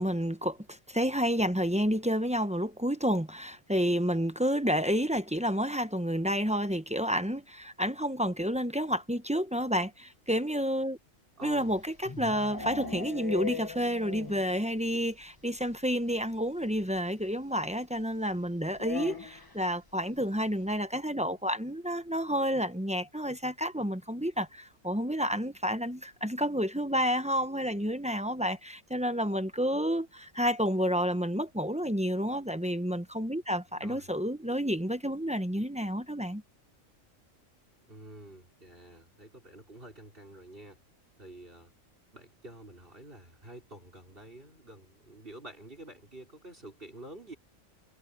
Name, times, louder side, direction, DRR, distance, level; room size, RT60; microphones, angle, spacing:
voice 1, 0.0-11.0 11.4-36.4, equal, 5° right, 0.7 m, -30 dB
voice 2, 11.4-11.8 33.8-34.1 37.9-40.8 41.2-41.7 42.1-47.4, right 1 dB, 45° right, 5.0 m, -48 dB
sound 1, 11.5-14.6 14.8-14.9 15.2-15.3 15.6-15.7 16.9-17.0 18.7-19.6, left 5 dB, 20° left, 1.2 m, -38 dB
omnidirectional pair, 1.3 m